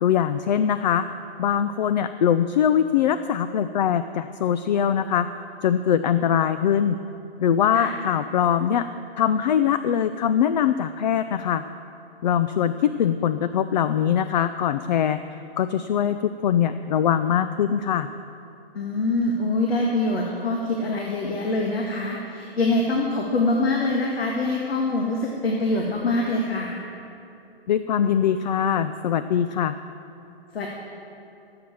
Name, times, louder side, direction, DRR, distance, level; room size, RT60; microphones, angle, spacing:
voice 1, 0.0-1.1 1.4-5.3 5.6-7.0 7.4-8.8 9.2-11.6 12.2-15.2 15.6-18.1 27.7-29.7, left 9 dB, 50° left, 11 dB, 0.4 m, -22 dB
voice 2, 18.7-26.8 30.5-30.7, left 2 dB, 75° left, 0 dB, 1.9 m, -24 dB
15.5 x 7.8 x 7.2 m, 2.9 s
hypercardioid pair, 150°, 30 cm